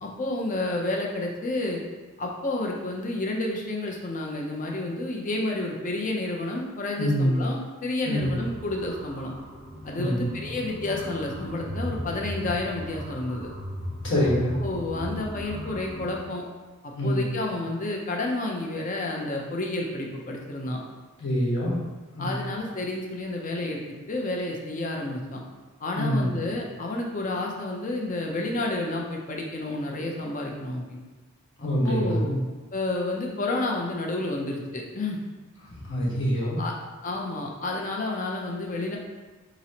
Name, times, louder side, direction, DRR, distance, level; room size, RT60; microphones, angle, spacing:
voice 1, 0.0-1.8 2.2-9.3 9.8-13.5 14.6-16.4 16.8-20.8 22.2-23.8 24.1-25.4 25.8-31.0 31.6-32.3 32.7-35.2 36.6-36.7 37.0-39.0, left 2 dB, 40° left, 0 dB, 0.6 m, -30 dB
voice 2, 7.0-7.4 8.0-8.3 9.9-10.4 14.0-14.5 17.0-17.2 21.2-21.8 22.1-22.3 25.9-26.3 31.6-32.3 35.8-36.6, equal, 60° left, -5 dB, 1.3 m, -25 dB
sound 1, 8.1-16.2, equal, 5° left, 1.1 m, -37 dB
5.0 x 3.0 x 2.8 m, 1.2 s
head